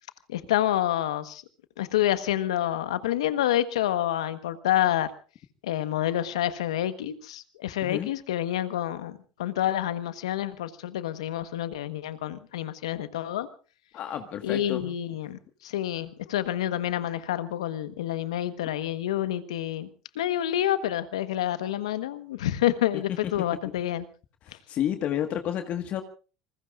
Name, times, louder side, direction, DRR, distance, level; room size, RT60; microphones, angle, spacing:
voice 1, 0.3-1.4 1.8-5.1 5.6-13.5 14.4-19.9 20.1-24.0, left 12 dB, 85° left, 12 dB, 1.3 m, -28 dB
voice 2, 13.9-14.9 24.5-26.0, left 10 dB, 50° left, 7 dB, 1.6 m, -30 dB
27.5 x 20.5 x 2.5 m, 0.37 s
hypercardioid pair, 90°, 3 cm